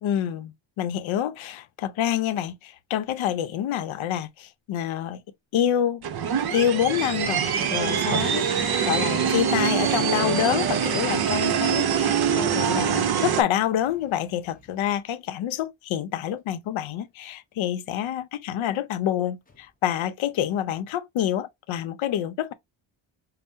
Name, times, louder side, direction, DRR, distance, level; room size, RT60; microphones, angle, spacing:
voice 1, 0.0-5.2 5.5-6.1 6.5-22.5, left 10 dB, 80° left, 0.6 m, -27 dB
sound 1, 6.0-13.4, right 8 dB, 50° right, 0.6 m, -24 dB
Motor vehicle (road), 7.2-15.2 19.5-19.6, left 3 dB, 20° left, 0.6 m, -43 dB
5.3 x 2.0 x 2.6 m
cardioid pair, 120°, 47 cm